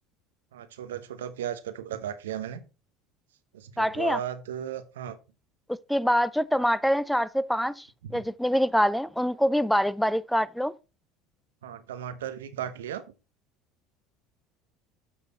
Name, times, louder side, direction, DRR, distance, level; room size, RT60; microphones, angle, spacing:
voice 1, 0.5-2.6 3.5-5.2 8.0-8.2 11.6-13.0, right 9 dB, 85° right, 0.9 m, -36 dB
voice 2, 3.8-4.2 5.7-7.9 8.1-10.7, equal, ahead, 0.4 m, -25 dB
7.3 x 6.4 x 4.2 m
hypercardioid pair, 80°, 0 cm